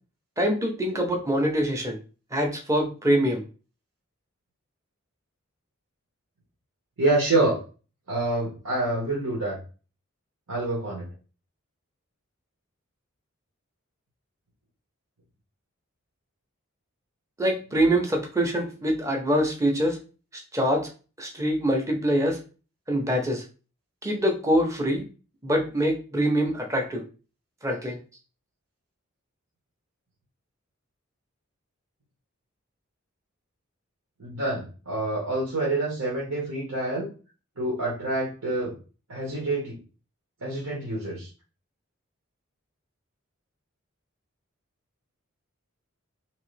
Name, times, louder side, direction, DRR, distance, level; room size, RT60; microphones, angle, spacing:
voice 1, 0.4-2.0 2.3-3.4 17.4-20.0 20.3-20.9 21.2-22.4 22.9-23.4 24.0-25.0 25.4-27.0 27.6-28.0, equal, 15° right, 2 dB, 0.7 m, -24 dB
voice 2, 7.0-7.6 8.1-9.6 10.5-11.1 34.2-37.1 37.6-38.7 39.1-39.8 40.4-41.3, right 2 dB, 90° right, -5 dB, 1.2 m, -27 dB
3.1 x 2.9 x 3.2 m, 0.35 s
head